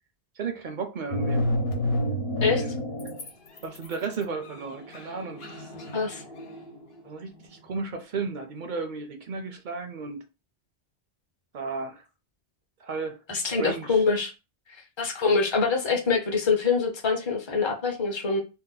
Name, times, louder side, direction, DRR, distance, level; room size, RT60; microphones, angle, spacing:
voice 1, 0.4-1.5 2.4-2.8 3.6-5.7 7.0-10.2 11.5-12.0 12.8-14.0, right 4 dB, 55° right, 0.6 m, -34 dB
sound 1, 1.1-3.3 3.6-7.0, left 1 dB, 65° left, 1.0 m, -29 dB
voice 2, 13.3-14.3 15.0-18.4, left 4 dB, 30° left, 0.6 m, -24 dB
2.7 x 2.1 x 3.8 m
omnidirectional pair, 1.1 m